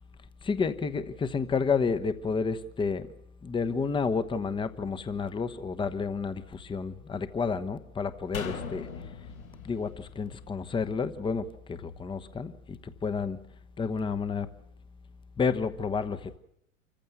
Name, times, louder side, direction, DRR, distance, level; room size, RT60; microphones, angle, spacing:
voice 1, 0.4-3.1 3.4-8.9 9.6-13.4 13.8-14.5 15.4-16.4, left 5 dB, 10° left, 1.1 m, -30 dB
sound 1, 8.3-11.7 12.0-12.1, left 6 dB, 75° left, 4.0 m, -41 dB
26.5 x 15.0 x 8.0 m
figure-of-eight pair, 100°, 41 cm